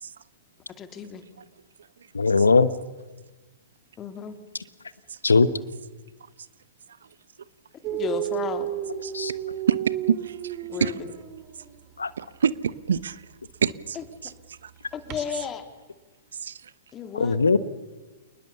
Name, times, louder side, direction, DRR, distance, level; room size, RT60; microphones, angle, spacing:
voice 1, 0.8-1.2 4.0-4.4 7.9-8.7 10.7-11.0 14.0-14.1 14.9-15.6 16.9-17.4, left 7 dB, 25° left, 8 dB, 2.6 m, -33 dB
voice 2, 2.1-2.7 5.2-5.5 9.1-9.3 12.0-12.1 17.2-17.6, left 4 dB, 80° left, 16 dB, 1.1 m, -19 dB
Dog, 7.8-11.8 12.9-13.0 15.1-15.2, right 12 dB, 35° right, 2.1 m, -32 dB
voice 3, 10.1-10.9 12.2-13.2 13.6-14.0 14.2-14.3 14.6-14.7 16.4-16.6, right 7 dB, 70° right, 18 dB, 1.0 m, -26 dB
28.0 x 20.0 x 7.0 m, 1.2 s
figure-of-eight pair, 110°, 0 cm